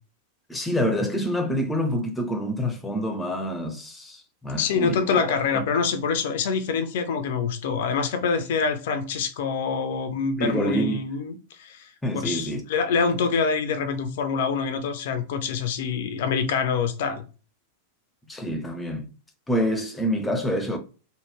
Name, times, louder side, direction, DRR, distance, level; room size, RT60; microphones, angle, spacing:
voice 1, 0.5-5.6 10.4-11.1 12.0-12.6 18.3-19.1 19.5-20.8, equal, 10° left, 0.7 m, -27 dB
voice 2, 4.6-11.9 12.2-17.2, left 5 dB, 55° left, 0.5 m, -25 dB
3.2 x 2.2 x 3.3 m
figure-of-eight pair, 90°, 0 cm